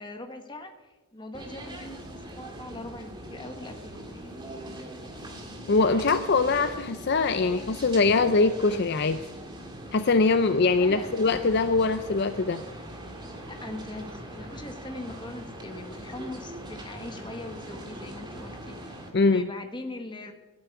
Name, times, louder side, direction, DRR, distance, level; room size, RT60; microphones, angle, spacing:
voice 1, 0.0-4.4 10.8-11.1 13.5-20.3, left 2 dB, 20° left, 6 dB, 1.1 m, -41 dB
sound 1, 1.3-19.1, right 1 dB, 20° right, 1.9 m, -41 dB
voice 2, 5.7-9.2 9.9-12.6 19.1-19.5, left 3 dB, 50° left, 11 dB, 0.5 m, -23 dB
12.0 x 9.2 x 8.5 m, 1.2 s
head